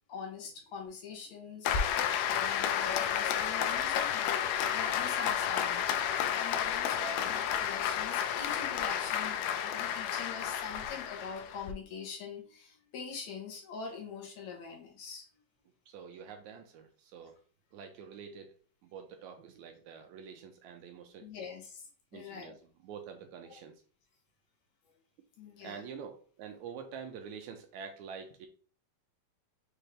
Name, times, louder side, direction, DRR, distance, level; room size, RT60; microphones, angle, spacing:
voice 1, 0.1-15.3 21.2-22.6 23.5-23.6 25.4-25.8, left 5 dB, 70° left, 1 dB, 2.1 m, -44 dB
Applause, 1.7-11.7, left 9 dB, 90° left, 2.1 m, -31 dB
voice 2, 15.9-17.4 17.7-18.5 18.8-21.5 22.1-23.8 25.6-28.5, right 6 dB, 80° right, 5 dB, 1.9 m, -47 dB
5.8 x 2.6 x 3.2 m, 0.39 s
omnidirectional pair, 3.6 m